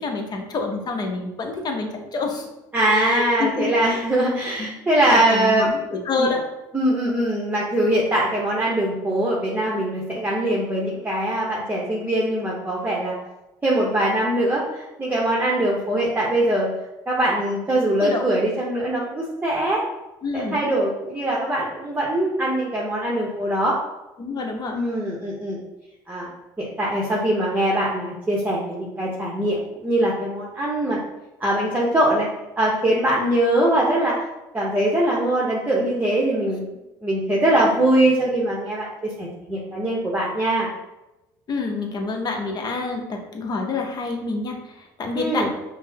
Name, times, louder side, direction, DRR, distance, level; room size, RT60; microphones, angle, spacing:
voice 1, 0.0-2.5 2.9-4.0 4.6-4.7 5.1-6.4 18.0-18.3 20.2-20.6 24.2-24.8 41.5-45.5, left 3 dB, 40° left, 3 dB, 0.8 m, -27 dB
voice 2, 2.7-5.7 6.2-6.3 6.7-13.1 13.6-16.7 17.1-19.8 20.3-23.8 24.7-25.6 26.1-26.3 26.6-31.0 31.4-32.3 32.6-34.1 34.5-36.6 37.0-40.7 45.1-45.5, right 1 dB, 15° right, -4 dB, 0.9 m, -22 dB
5.3 x 2.1 x 2.8 m, 0.98 s
hypercardioid pair, 70°, 10 cm